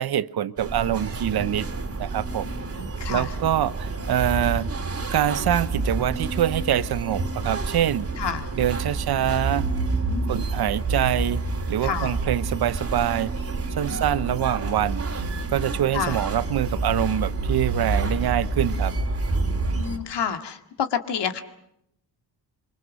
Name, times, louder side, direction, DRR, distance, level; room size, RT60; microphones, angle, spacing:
voice 1, 0.0-1.7 2.0-2.6 3.1-4.7 5.1-8.1 8.6-9.7 10.3-13.3 13.8-15.2 15.5-18.9, right 11 dB, 55° right, 0.9 m, -25 dB
sound 1, 0.6-20.0, right 3 dB, 30° right, 2.9 m, -28 dB
voice 2, 2.8-3.3 8.2-8.5 10.0-10.4 11.8-12.1 13.9-14.0 15.9-16.2 19.7-21.4, left 7 dB, 65° left, 2.1 m, -29 dB
26.0 x 24.5 x 6.4 m
cardioid pair, 120°, 44 cm